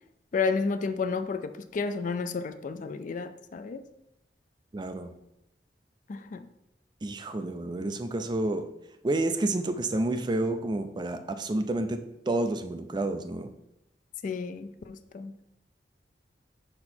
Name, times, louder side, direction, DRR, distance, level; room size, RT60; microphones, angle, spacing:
voice 1, 0.3-3.8 6.1-6.4 14.2-15.3, left 4 dB, 45° left, 10 dB, 0.3 m, -31 dB
voice 2, 4.7-5.1 7.0-8.7 9.0-13.5, right 2 dB, 25° right, 8 dB, 0.4 m, -29 dB
5.3 x 4.4 x 4.3 m, 0.83 s
head